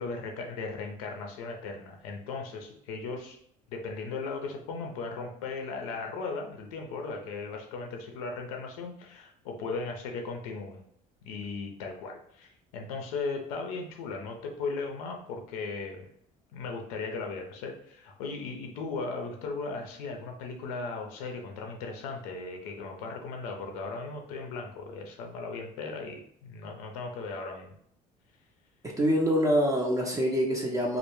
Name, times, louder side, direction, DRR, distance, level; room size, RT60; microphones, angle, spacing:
voice 1, 0.0-3.4 3.7-10.8 11.2-16.1 16.5-27.7, left 4 dB, 85° left, 3 dB, 0.5 m, -37 dB
voice 2, 28.8-31.0, equal, 20° right, -1 dB, 0.5 m, -25 dB
2.1 x 2.0 x 3.0 m, 0.67 s
hypercardioid pair, 70°, 18 cm